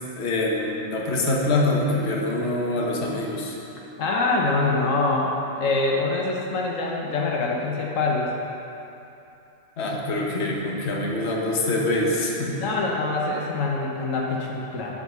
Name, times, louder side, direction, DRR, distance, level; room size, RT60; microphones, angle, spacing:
voice 1, 0.2-3.6 9.8-12.6, left 2 dB, 60° left, -2 dB, 1.2 m, -25 dB
voice 2, 4.0-8.3 12.6-14.9, left 3 dB, 80° left, -1 dB, 1.2 m, -24 dB
7.7 x 4.9 x 6.8 m, 2.8 s
omnidirectional pair, 1.3 m